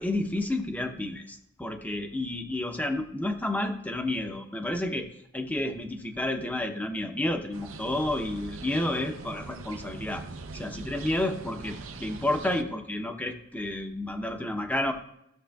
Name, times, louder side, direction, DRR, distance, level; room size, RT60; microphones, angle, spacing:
voice 1, 0.0-5.1 5.3-10.2 10.5-14.9, left 1 dB, 10° left, 5 dB, 0.7 m, -30 dB
sound 1, 7.5-12.6, right 3 dB, 90° right, 0.6 m, -42 dB
14.0 x 6.6 x 2.3 m, 0.78 s
head